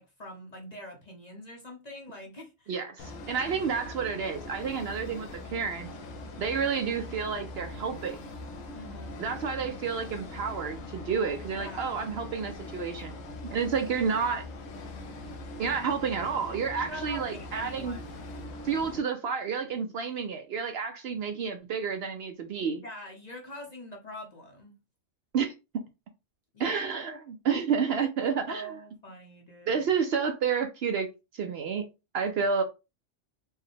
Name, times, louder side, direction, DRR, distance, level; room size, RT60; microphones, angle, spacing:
voice 1, 0.0-2.8 8.7-9.2 11.6-11.9 16.8-18.0 22.8-24.8 26.5-26.8 28.0-28.1 28.5-29.8, left 1 dB, 40° left, 0.8 m, -44 dB
voice 2, 2.7-5.9 6.4-8.2 9.2-13.1 13.5-14.4 15.6-18.0 18.6-22.8 25.3-25.5 26.6-28.8 29.7-31.1 31.3-31.8 32.1-32.6, right 6 dB, 65° right, 0.7 m, -30 dB
sound 1, 3.0-19.0, left 2 dB, 80° left, 1.1 m, -42 dB
4.6 x 2.1 x 3.2 m
omnidirectional pair, 1.3 m